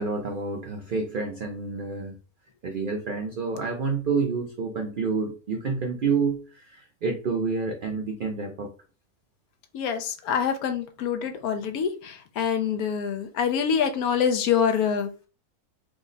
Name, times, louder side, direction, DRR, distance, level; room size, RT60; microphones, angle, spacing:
voice 1, 0.0-2.2 2.6-8.7, right 4 dB, 85° right, 2 dB, 0.4 m, -28 dB
voice 2, 9.7-15.3, left 7 dB, 75° left, 6 dB, 1.1 m, -26 dB
3.5 x 2.0 x 3.8 m, 0.35 s
omnidirectional pair, 1.6 m